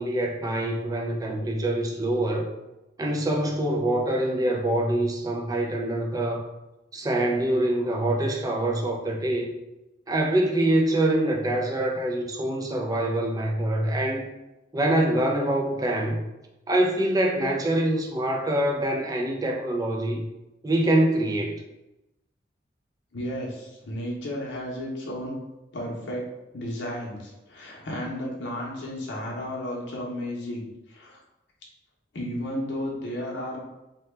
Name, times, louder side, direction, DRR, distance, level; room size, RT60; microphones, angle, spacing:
voice 1, 0.0-2.5 3.0-6.5 6.9-9.5 10.1-14.3 14.7-16.2 16.7-20.2 20.6-21.6, right 1 dB, 20° right, 1 dB, 0.3 m, -25 dB
voice 2, 23.1-25.4 25.7-26.2 26.5-31.2 32.1-33.6, left 1 dB, 75° left, -4 dB, 0.7 m, -33 dB
2.7 x 2.2 x 3.2 m, 0.97 s
head